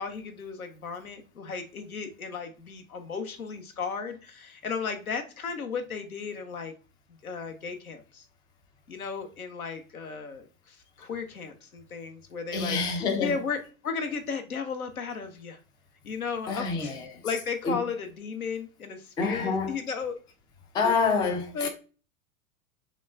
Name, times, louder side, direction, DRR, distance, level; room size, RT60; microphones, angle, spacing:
voice 1, 0.0-6.7 7.2-8.3 8.9-15.6 16.0-17.0 17.2-20.2 20.8-21.1 21.5-21.7, left 5 dB, 80° left, 0.9 m, -35 dB
voice 2, 12.5-13.4 16.5-17.2 17.6-17.8 19.2-19.8 20.7-21.7, left 4 dB, 10° left, 0.4 m, -27 dB
6.1 x 2.3 x 2.4 m
figure-of-eight pair, 90°, 42 cm